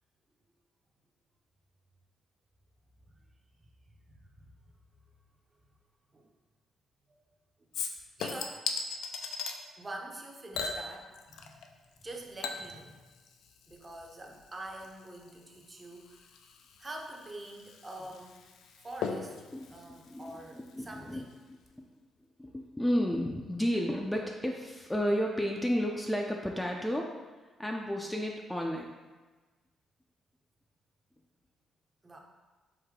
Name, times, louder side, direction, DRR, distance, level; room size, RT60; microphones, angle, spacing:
voice 1, 4.1-4.5 6.1-6.3 7.1-7.2 7.9-8.6 9.6-11.7 12.0-13.0 13.7-16.2 16.8-18.4 18.8-19.4 19.7-21.4 32.0-32.2, right 1 dB, 25° right, 1 dB, 0.7 m, -45 dB
Chink clink / Liquid, 7.7-9.6 10.5-11.7 12.0-21.0 21.3-21.4, left 5 dB, 80° left, 0.4 m, -40 dB
voice 2, 19.5-21.8 22.4-27.1 27.6-28.9, equal, 5° left, 0 dB, 0.4 m, -32 dB
4.9 x 2.7 x 3.6 m, 1.3 s
cardioid pair, 90°, 0 cm